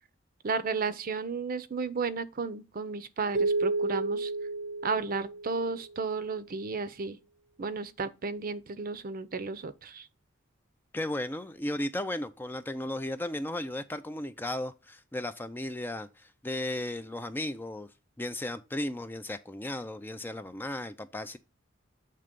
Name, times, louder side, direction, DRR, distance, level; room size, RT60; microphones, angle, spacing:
voice 1, 0.4-4.3 4.8-7.2 7.6-10.1, right 4 dB, 45° right, 0.5 m, -33 dB
sound 1, 3.3-5.9, right 3 dB, 85° right, 0.7 m, -31 dB
voice 2, 10.9-17.9 18.2-21.4, left 1 dB, 10° left, 0.3 m, -35 dB
7.6 x 3.3 x 5.1 m
head